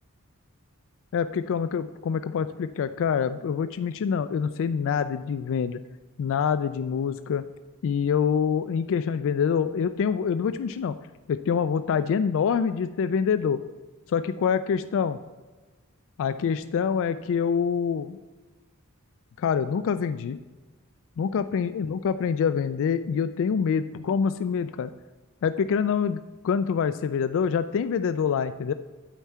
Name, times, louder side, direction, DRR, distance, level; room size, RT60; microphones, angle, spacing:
voice 1, 1.1-5.8 6.2-7.4 7.8-11.0 11.3-13.6 14.1-15.2 16.2-18.2 19.4-20.4 21.2-24.9 25.4-28.7, left 6 dB, 60° left, 11 dB, 0.3 m, -26 dB
9.0 x 4.5 x 7.4 m, 1.3 s
head